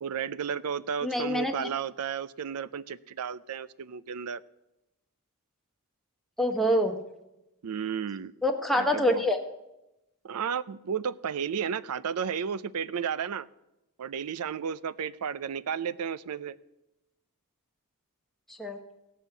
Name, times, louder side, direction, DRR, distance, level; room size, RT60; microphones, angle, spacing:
voice 1, 0.0-4.4 7.6-8.3 8.8-9.2 10.2-13.5 14.0-16.6, right 7 dB, 90° right, 18 dB, 0.5 m, -33 dB
voice 2, 1.0-1.7 6.4-7.0 8.4-9.4 18.5-18.8, left 1 dB, ahead, 3 dB, 1.1 m, -26 dB
16.5 x 5.6 x 8.1 m, 0.94 s
head